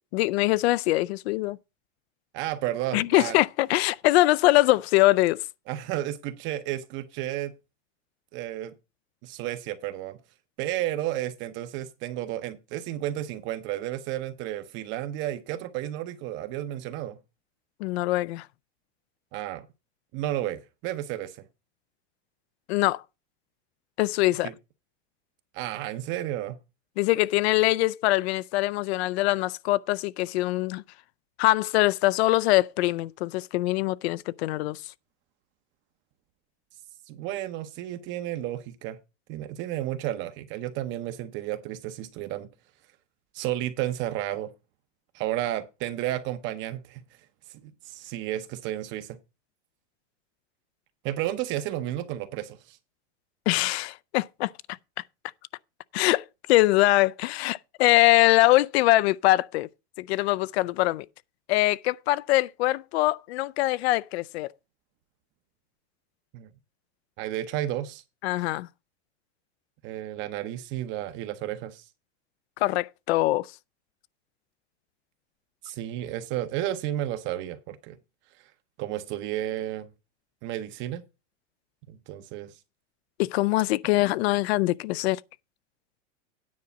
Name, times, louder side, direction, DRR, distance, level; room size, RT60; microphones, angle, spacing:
voice 1, 0.1-1.6 2.9-5.4 17.8-18.5 22.7-23.0 24.0-24.5 27.0-30.8 31.4-34.8 53.5-54.8 55.9-59.7 60.0-61.1 61.5-64.5 68.2-68.7 72.6-73.5 83.2-85.2, left 18 dB, 60° left, 0.5 m, -23 dB
voice 2, 2.3-3.4 5.7-7.5 8.3-8.7 9.2-10.2 10.6-17.2 19.3-19.7 20.1-21.4 24.4-24.5 25.5-26.6 37.1-39.0 39.3-42.5 43.3-44.5 45.1-47.0 47.9-49.2 51.0-52.8 66.3-66.5 67.2-68.0 69.8-71.8 75.6-78.0 78.8-79.9 80.4-81.0 81.9-82.5, right 13 dB, 35° right, 0.7 m, -32 dB
9.6 x 5.2 x 6.8 m
supercardioid pair, 160°, 36 cm